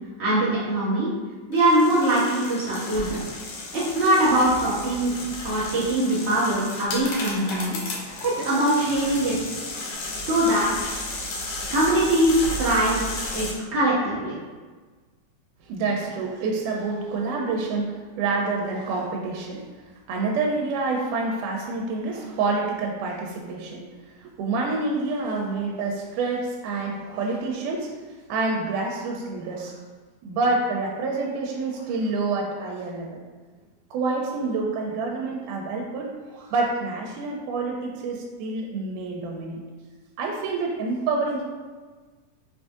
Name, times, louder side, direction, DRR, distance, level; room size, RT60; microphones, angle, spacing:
voice 1, 0.2-1.1 1.5-3.2 3.7-5.1 5.4-7.8 8.2-9.4 10.2-10.7 11.7-13.0 13.3-14.3, right 1 dB, 40° right, -9 dB, 1.0 m, -22 dB
sound 1, 1.5-13.5, left 2 dB, 70° left, 2.1 m, -34 dB
voice 2, 15.6-19.6 20.1-23.8 24.2-27.9 28.3-29.8 30.2-33.2 33.9-39.6 40.2-41.4, right 3 dB, 85° right, 0 dB, 2.1 m, -27 dB
5.4 x 2.6 x 3.6 m, 1.4 s
omnidirectional pair, 3.6 m